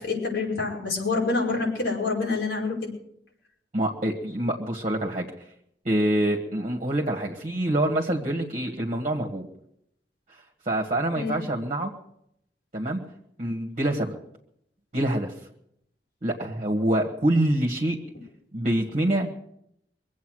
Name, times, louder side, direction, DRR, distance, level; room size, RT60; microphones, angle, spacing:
voice 1, 0.0-2.9 11.2-11.4, left 3 dB, 90° left, -4 dB, 5.3 m, -27 dB
voice 2, 3.7-5.3 5.8-9.5 10.6-11.9 12.7-13.0 13.4-14.2 14.9-15.3 16.2-18.0 18.5-19.3, right 1 dB, 40° right, 0 dB, 1.6 m, -25 dB
23.5 x 8.4 x 6.3 m, 0.74 s
head